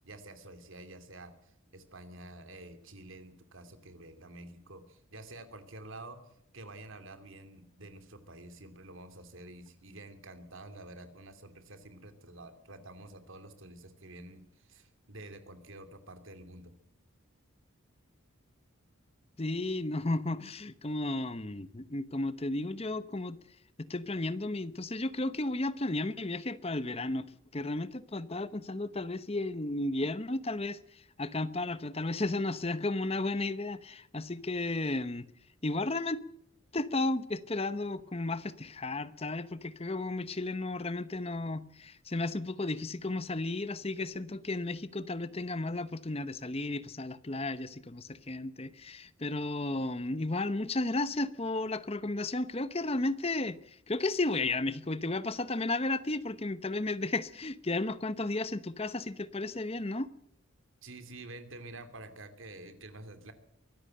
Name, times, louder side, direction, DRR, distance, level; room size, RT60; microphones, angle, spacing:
voice 1, 0.0-6.2 6.5-16.7 60.8-63.3, right 2 dB, 65° right, 2.8 m, -49 dB
voice 2, 19.4-23.4 23.8-27.3 27.5-30.8 31.2-35.3 35.6-36.2 36.7-60.1, left 2 dB, 30° left, 0.9 m, -33 dB
24.0 x 14.0 x 7.9 m
head